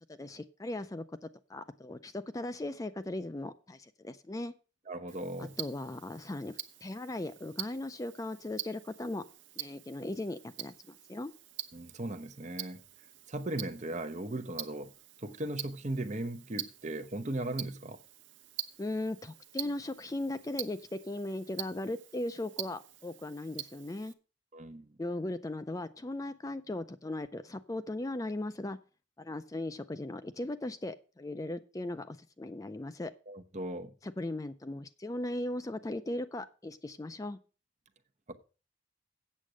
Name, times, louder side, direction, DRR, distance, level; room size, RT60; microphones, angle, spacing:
voice 1, 0.1-4.5 5.4-9.2 9.6-11.3 18.8-24.1 25.0-28.8 29.2-33.1 34.0-37.4, left 1 dB, 20° left, 0.4 m, -38 dB
voice 2, 4.9-5.6 11.7-12.8 13.3-14.9 15.2-18.0 24.5-24.9 33.3-33.9 38.3-38.4, right 1 dB, 40° right, 0.9 m, -37 dB
Tick-tock, 5.1-24.1, right 12 dB, 75° right, 0.9 m, -46 dB
8.4 x 7.4 x 6.1 m
head